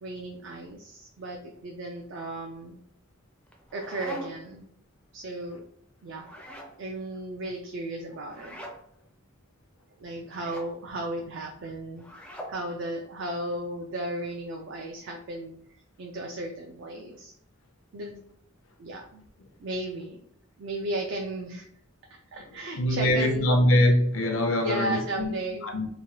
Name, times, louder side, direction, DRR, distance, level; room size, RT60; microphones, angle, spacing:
voice 1, 0.0-2.8 3.7-4.7 5.1-5.6 6.0-6.3 6.8-8.6 10.0-12.0 12.5-17.3 17.9-18.2 18.8-19.3 19.6-20.2 20.6-21.6 22.3-23.6 24.6-25.7, right 1 dB, 60° right, 0.4 m, -35 dB
sound 1, 3.5-4.5 6.2-6.8 8.3-8.8 10.3-10.7 12.0-12.6, equal, 5° left, 0.4 m, -42 dB
voice 2, 22.8-25.3 25.6-25.9, left 1 dB, 75° left, 0.6 m, -23 dB
2.9 x 2.2 x 2.9 m
head